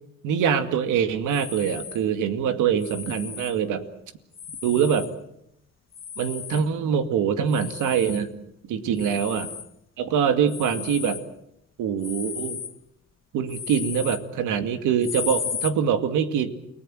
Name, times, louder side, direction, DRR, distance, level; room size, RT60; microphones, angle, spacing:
voice 1, 0.2-3.8 4.6-5.1 6.2-8.3 8.7-9.5 10.0-11.2 11.8-12.6 13.3-16.5, right 7 dB, 90° right, 8 dB, 2.4 m, -24 dB
sound 1, 1.3-2.0 2.8-3.6 4.3-5.1 5.9-6.7 7.5-8.3 9.0-9.7 10.5-11.3 12.0-12.8 13.5-14.3 15.0-15.7, left 8 dB, 40° left, 1.2 m, -35 dB
29.5 x 19.0 x 7.8 m, 0.76 s
cardioid pair, 90°, 30 cm